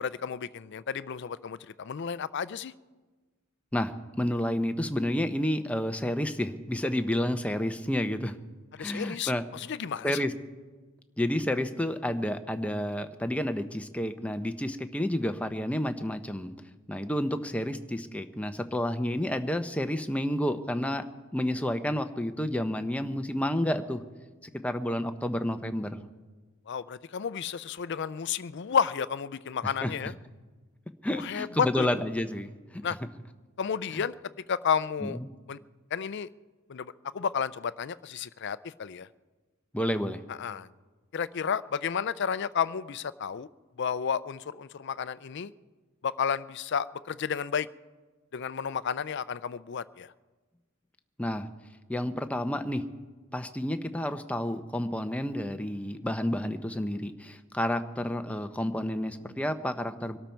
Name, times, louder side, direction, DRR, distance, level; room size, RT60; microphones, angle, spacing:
voice 1, 0.0-2.7 8.7-10.2 26.7-30.1 31.1-32.0 32.8-33.0 33.6-34.1 34.5-35.2 35.5-35.6 35.9-36.3 36.7-39.1 40.3-40.7 41.1-43.5 43.8-45.5 46.0-47.7 48.3-50.1, left 7 dB, 55° left, 16 dB, 0.4 m, -32 dB
voice 2, 4.2-8.4 8.8-9.4 10.0-10.3 11.2-16.5 16.9-21.0 21.3-24.0 24.4-26.0 29.6-29.9 31.0-32.8 33.9-34.0 35.0-35.3 39.7-40.2 51.2-51.5 51.9-52.8 53.3-60.2, left 1 dB, 5° left, 7 dB, 0.7 m, -30 dB
23.0 x 12.5 x 4.5 m, 1.3 s
head